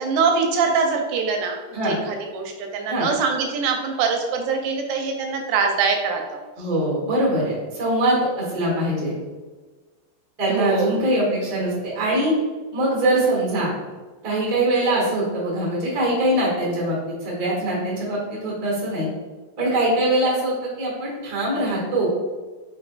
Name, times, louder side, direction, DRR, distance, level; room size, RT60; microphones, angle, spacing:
voice 1, 0.0-6.4 10.5-10.9, right 5 dB, 85° right, 3 dB, 2.2 m, -23 dB
voice 2, 6.6-9.1 10.4-12.3 12.7-13.7 14.2-19.1 19.6-22.1, right 1 dB, 45° right, -5 dB, 1.2 m, -22 dB
5.4 x 3.9 x 2.3 m, 1.3 s
omnidirectional pair, 4.1 m